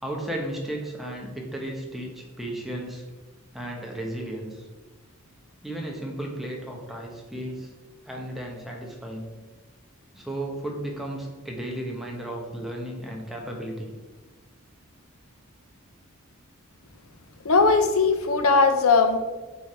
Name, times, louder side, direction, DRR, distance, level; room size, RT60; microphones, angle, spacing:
voice 1, 0.0-3.0 3.5-4.6 5.6-7.7 8.0-9.3 10.1-13.9, right 1 dB, ahead, -1 dB, 1.1 m, -34 dB
voice 2, 17.4-19.2, left 4 dB, 75° left, 7 dB, 0.8 m, -19 dB
8.0 x 3.5 x 4.3 m, 1.2 s
head